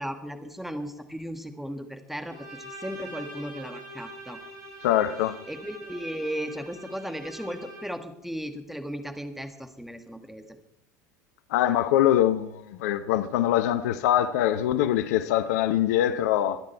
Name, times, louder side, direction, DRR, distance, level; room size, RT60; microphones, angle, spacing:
voice 1, 0.0-4.4 5.5-10.4, equal, ahead, 1.8 m, -36 dB
Bowed string instrument, 2.3-8.1, right 1 dB, 40° right, 7.0 m, -43 dB
voice 2, 4.8-5.4 11.5-16.6, left 12 dB, 65° left, 0.8 m, -23 dB
24.5 x 9.6 x 4.5 m
hypercardioid pair, 80°, 10 cm